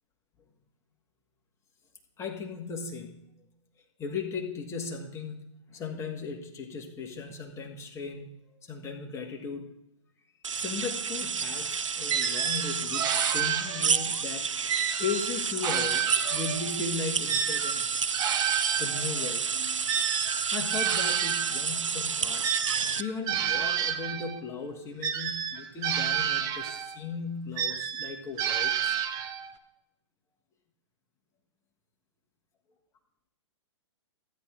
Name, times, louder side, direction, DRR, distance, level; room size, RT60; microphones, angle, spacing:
voice 1, 2.2-3.2 4.0-5.4 5.7-9.7 10.5-17.9 18.8-19.5 20.5-29.0, left 5 dB, 15° left, 3 dB, 1.4 m, -37 dB
sound 1, 10.4-23.0, right 6 dB, 90° right, 0.4 m, -30 dB
sound 2, 12.1-14.1 14.7-16.8 17.3-21.6 22.4-24.4 25.0-27.0 27.6-29.5, right 9 dB, 25° right, 0.7 m, -30 dB
13.0 x 9.7 x 3.7 m, 0.83 s
figure-of-eight pair, 115°, 16 cm